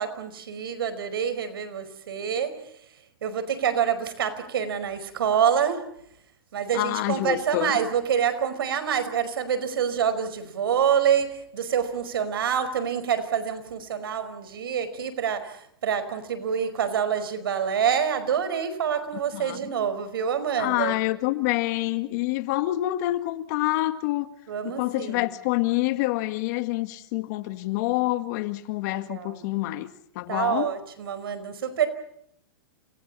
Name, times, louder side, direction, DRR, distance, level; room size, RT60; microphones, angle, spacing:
voice 1, 0.0-2.6 3.2-5.8 6.5-21.0 24.5-25.3 29.1-29.4 30.3-31.9, right 8 dB, 80° right, 5.1 m, -26 dB
voice 2, 6.7-7.7 19.3-19.6 20.6-24.3 24.6-29.9 30.2-30.7, left 17 dB, 50° left, 1.9 m, -27 dB
30.0 x 29.5 x 4.3 m
hypercardioid pair, 135°, 12 cm